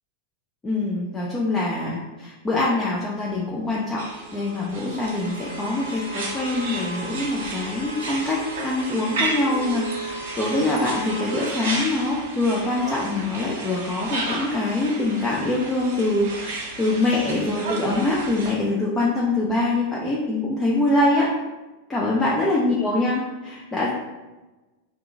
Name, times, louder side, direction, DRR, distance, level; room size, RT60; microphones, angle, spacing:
voice 1, 0.6-4.0 4.3-21.3 21.9-23.9, left 2 dB, 15° left, -5 dB, 0.5 m, -24 dB
sound 1, 4.0-18.6, right 2 dB, 55° right, 0.7 m, -32 dB
2.8 x 2.4 x 3.7 m, 1.1 s
figure-of-eight pair, 90°, 0 cm